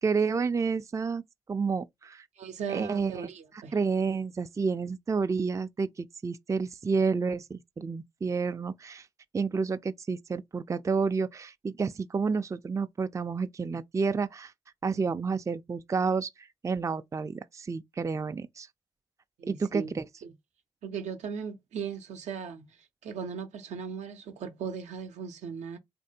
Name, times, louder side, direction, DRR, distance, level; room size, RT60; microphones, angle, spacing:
voice 1, 0.0-1.2 1.5-2.3 2.7-3.3 3.7-9.1 9.3-14.5 14.8-18.7 19.5-20.0, right 5 dB, 25° right, 0.3 m, -30 dB
voice 2, 2.4-3.7 19.4-19.9 20.2-20.3 20.8-22.8 23.0-25.8, right 6 dB, 80° right, 0.5 m, -37 dB
3.1 x 2.5 x 2.7 m
supercardioid pair, 40°, 12 cm